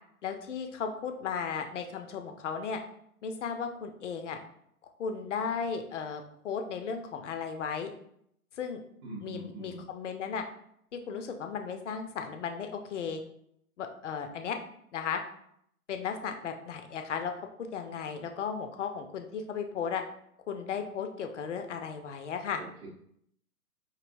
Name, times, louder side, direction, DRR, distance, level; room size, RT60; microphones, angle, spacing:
voice 1, 0.2-2.8 3.2-4.4 5.0-7.9 8.5-8.8 9.2-10.4 10.9-13.2 13.8-14.6 14.9-15.2 15.9-17.3 17.6-20.0 20.5-22.6, left 6 dB, 55° left, 6 dB, 0.6 m, -35 dB
voice 2, 9.0-9.8 22.6-22.9, right 1 dB, 30° right, -7 dB, 0.8 m, -43 dB
4.7 x 2.6 x 2.6 m, 0.70 s
figure-of-eight pair, 125°, 45 cm